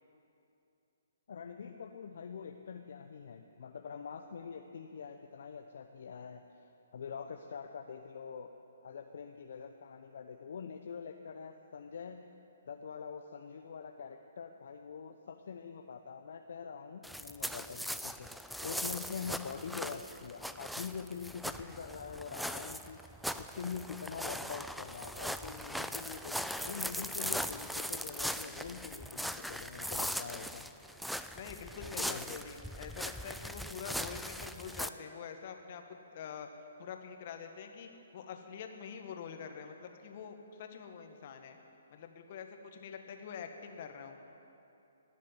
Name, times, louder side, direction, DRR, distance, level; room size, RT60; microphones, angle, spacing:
voice 1, 1.3-6.4 6.9-8.5 8.8-12.3 12.7-23.0 23.4-30.7 31.8-32.3, left 6 dB, 60° left, 5 dB, 0.8 m, -44 dB
sound 1, 17.0-34.9, equal, ahead, 0.4 m, -40 dB
voice 2, 31.3-36.5 36.8-41.6 41.9-44.2, left 7 dB, 45° left, 5 dB, 1.6 m, -46 dB
18.0 x 7.4 x 9.7 m, 2.8 s
figure-of-eight pair, 135°, 0 cm